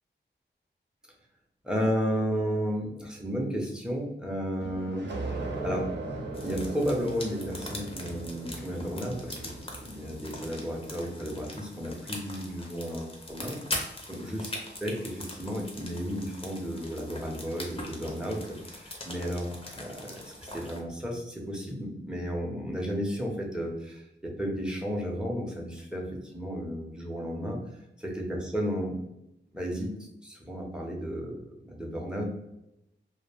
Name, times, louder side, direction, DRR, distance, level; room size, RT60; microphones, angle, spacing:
voice 1, 1.6-5.9 6.4-9.5 9.8-13.6 14.1-14.5 14.8-27.6 28.0-29.0 29.5-29.9 30.2-32.2, equal, 5° right, -1 dB, 0.8 m, -33 dB
sound 1, 4.6-11.0, right 2 dB, 65° right, 0.6 m, -38 dB
sound 2, 6.3-20.8, left 1 dB, 30° left, 0.6 m, -42 dB
2.3 x 2.1 x 3.3 m, 0.84 s
cardioid pair, 55°, 20 cm